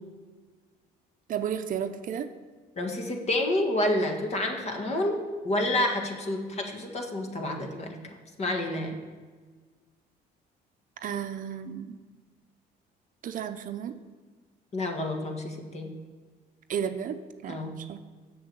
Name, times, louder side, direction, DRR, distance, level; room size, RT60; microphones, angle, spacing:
voice 1, 1.3-2.3 11.0-12.0 13.2-13.9 16.7-17.2 17.4-18.0, right 8 dB, 55° right, 8 dB, 0.7 m, -33 dB
voice 2, 2.8-8.0 8.4-9.0 14.7-15.9 17.5-17.8, left 1 dB, 40° left, 3 dB, 1.6 m, -29 dB
7.6 x 6.9 x 8.0 m, 1.5 s
cardioid pair, 110°, 17 cm